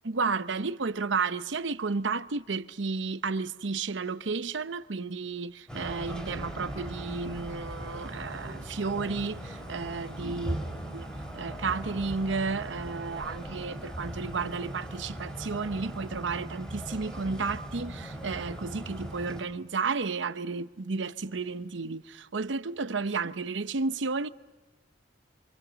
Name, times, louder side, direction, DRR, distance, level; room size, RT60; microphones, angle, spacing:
voice 1, 0.0-10.6 10.9-24.3, right 4 dB, 85° right, 0.8 m, -32 dB
sound 1, 5.7-19.4, right 1 dB, 5° left, 5.0 m, -39 dB
28.0 x 27.5 x 6.9 m
head